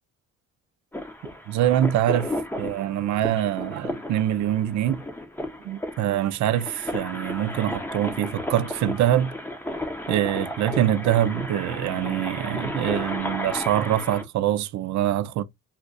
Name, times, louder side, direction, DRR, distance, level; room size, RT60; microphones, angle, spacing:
sound 1, 0.9-14.2, left 1 dB, 5° left, 0.7 m, -33 dB
voice 1, 1.5-5.0 5.6-9.3 10.1-15.4, right 11 dB, 70° right, 0.5 m, -24 dB
2.4 x 2.4 x 3.8 m
cardioid pair, 90°, 30 cm